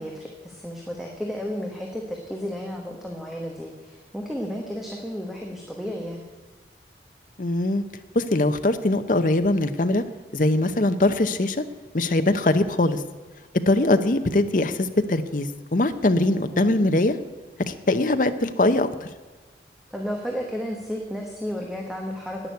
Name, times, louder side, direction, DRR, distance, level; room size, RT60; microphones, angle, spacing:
voice 1, 0.0-6.2 16.3-16.9 19.9-22.5, equal, ahead, 0 dB, 1.2 m, -33 dB
voice 2, 7.4-7.8 8.1-10.0 10.3-11.6 11.9-13.0 13.7-17.2 17.7-18.9, left 2 dB, 45° left, 9 dB, 0.7 m, -22 dB
11.0 x 9.4 x 8.2 m, 1.3 s
head